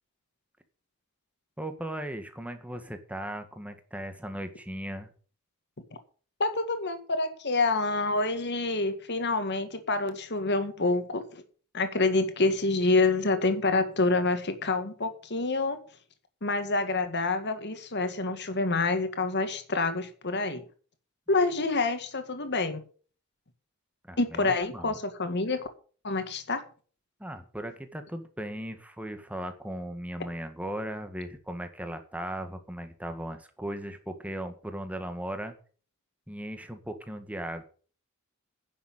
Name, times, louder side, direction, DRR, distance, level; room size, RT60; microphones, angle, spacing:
voice 1, 1.6-5.1 24.1-25.0 27.2-35.5 36.3-37.7, right 1 dB, 5° right, 8 dB, 1.6 m, -37 dB
voice 2, 6.4-11.4 11.7-15.8 16.4-20.6 21.3-22.8 24.2-25.7 26.0-26.6, left 3 dB, 50° left, 8 dB, 1.9 m, -27 dB
10.5 x 7.3 x 8.8 m, 0.42 s
head